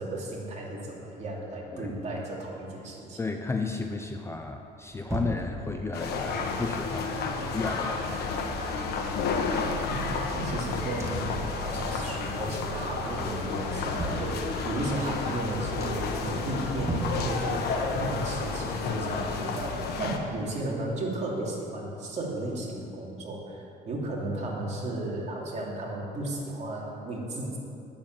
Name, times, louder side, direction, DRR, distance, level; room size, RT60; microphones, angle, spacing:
voice 1, 0.0-3.2 9.9-27.6, right 1 dB, 40° right, -3 dB, 2.8 m, -34 dB
voice 2, 3.2-8.3, left 3 dB, 15° left, 4 dB, 0.6 m, -34 dB
sound 1, 4.3-6.1 6.8-8.2 8.6-8.7 8.9-10.6 11.0-12.2 12.5-13.0 13.4-14.9 15.3-15.4 15.8-16.3 16.7-17.9 18.2-20.0 20.3-20.4, right 2 dB, 15° right, 1.8 m, -40 dB
sound 2, 5.9-20.2, left 4 dB, 70° left, 1.3 m, -31 dB
9.4 x 7.2 x 9.0 m, 2.6 s
cardioid pair, 110°, 17 cm